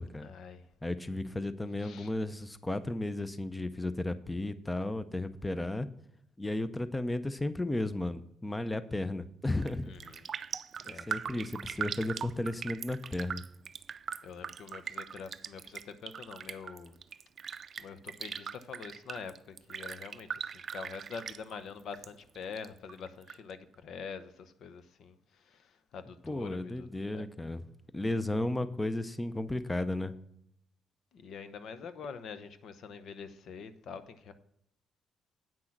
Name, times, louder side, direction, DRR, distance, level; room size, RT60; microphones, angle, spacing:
voice 1, 0.2-0.6 1.8-2.1 9.9-10.3 10.8-11.2 14.2-17.0 17.8-20.5 20.7-25.2 25.5-26.9 27.1-27.2 31.1-34.3, left 6 dB, 70° left, 0.8 m, -45 dB
voice 2, 0.8-5.9 6.4-9.9 10.9-13.4 26.2-27.6 27.9-30.1, left 1 dB, 15° left, 0.6 m, -34 dB
Raindrop, 9.5-9.7 10.0-22.1 22.3-23.3 23.7-23.8, right 7 dB, 50° right, 0.4 m, -40 dB
8.9 x 6.2 x 5.9 m
cardioid pair, 90°, 0 cm